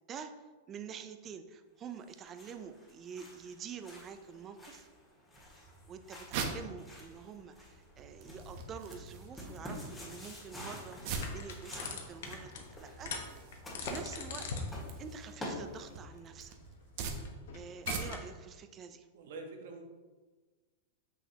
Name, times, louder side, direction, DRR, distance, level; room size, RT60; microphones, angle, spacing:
voice 1, 0.7-4.9 5.9-13.1 13.8-14.5 15.0-16.6 17.5-19.1, right 7 dB, 25° right, 9 dB, 0.5 m, -47 dB
sound 1, 2.0-16.1, left 1 dB, 10° left, 1.9 m, -48 dB
sound 2, 5.6-18.4, right 5 dB, 55° right, 0.8 m, -44 dB
sound 3, 8.3-18.2, left 4 dB, 75° left, 1.0 m, -45 dB
voice 2, 19.1-19.8, right 3 dB, 75° right, 3 dB, 1.1 m, -45 dB
6.1 x 5.7 x 2.8 m, 1.3 s
supercardioid pair, 140°, 0 cm